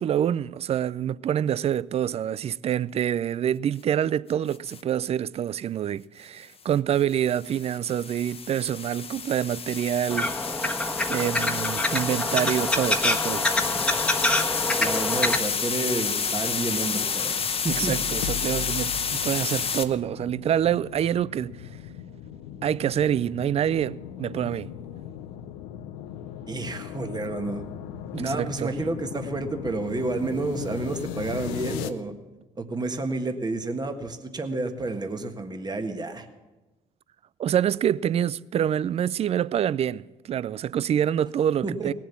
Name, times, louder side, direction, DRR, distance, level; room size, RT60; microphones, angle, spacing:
voice 1, 0.0-10.3 11.1-13.4 17.7-21.5 22.6-24.7 28.1-28.7 37.4-41.9, right 10 dB, 40° right, 0.4 m, -26 dB
sound 1, 4.5-4.8 6.9-19.8, left 6 dB, 40° left, 1.0 m, -30 dB
sound 2, 10.1-15.4, left 1 dB, 5° left, 1.4 m, -26 dB
voice 2, 14.8-17.9 26.5-27.6 28.2-32.1 32.6-36.3 41.6-41.9, right 2 dB, 25° right, 1.5 m, -30 dB
sound 3, 16.2-31.9, left 10 dB, 90° left, 0.6 m, -38 dB
18.0 x 7.6 x 7.1 m
supercardioid pair, 65°, 16 cm